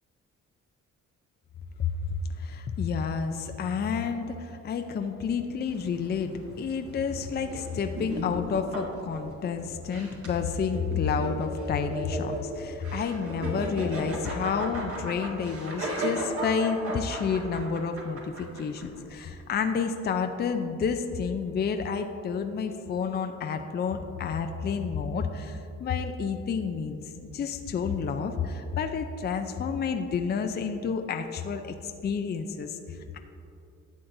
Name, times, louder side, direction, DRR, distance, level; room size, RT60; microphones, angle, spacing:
voice 1, 2.4-27.0 27.3-33.2, left 6 dB, 35° left, 6 dB, 0.5 m, -30 dB
sound 1, 5.6-19.2, right 1 dB, 50° right, 1.7 m, -36 dB
11.5 x 7.4 x 2.6 m, 2.6 s
cardioid pair, 90°, 30 cm